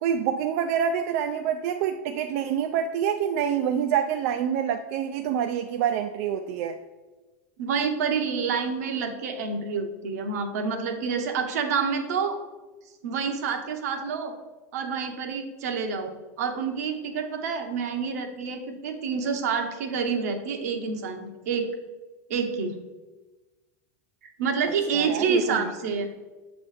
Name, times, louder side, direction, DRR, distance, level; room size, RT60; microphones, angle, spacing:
voice 1, 0.0-6.8 24.9-25.6, right 8 dB, 65° right, 5 dB, 0.4 m, -26 dB
voice 2, 7.6-12.4 13.0-14.3 14.7-21.7 22.3-22.8 24.4-26.1, right 5 dB, 85° right, 5 dB, 0.9 m, -28 dB
7.2 x 3.1 x 4.8 m, 1.2 s
supercardioid pair, 140°, 8 cm